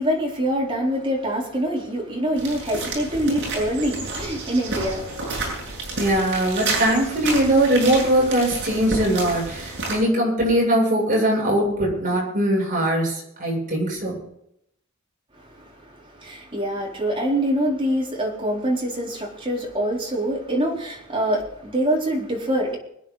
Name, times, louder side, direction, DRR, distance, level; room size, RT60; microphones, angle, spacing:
voice 1, 0.0-5.4 15.5-15.7 16.2-22.8, right 1 dB, 25° right, 4.3 m, -25 dB
sound 1, 2.4-9.9, right 3 dB, 60° right, 7.9 m, -30 dB
voice 2, 6.0-14.2, right 1 dB, 40° right, 7.9 m, -21 dB
24.5 x 10.0 x 4.2 m
head